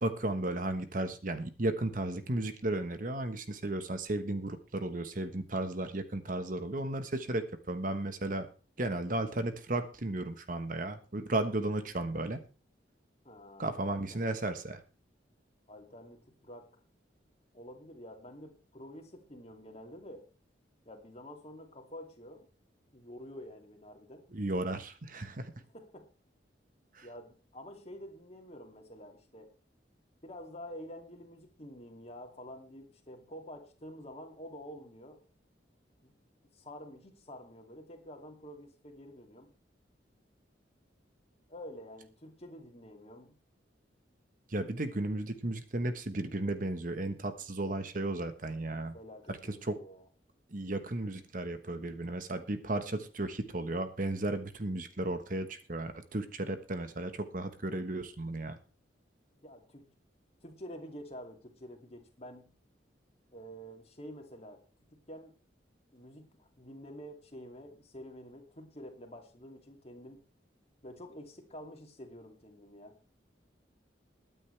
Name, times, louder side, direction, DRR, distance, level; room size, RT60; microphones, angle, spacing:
voice 1, 0.0-8.5 8.8-12.4 13.6-14.8 24.3-25.5 26.9-27.1 44.5-48.9 49.3-49.8 50.5-58.6, right 2 dB, 45° right, 9 dB, 1.2 m, -34 dB
voice 2, 13.2-14.3 15.7-16.7 17.5-20.3 20.9-22.5 22.9-24.2 25.7-26.1 27.0-29.5 30.2-35.2 36.0-36.2 36.5-39.5 41.5-43.4 48.9-50.1 59.4-59.9 60.4-62.5 63.3-64.6 64.9-65.4 65.9-70.2 70.8-72.9, equal, 35° left, 4 dB, 2.6 m, -48 dB
21.5 x 9.2 x 3.3 m, 0.35 s
head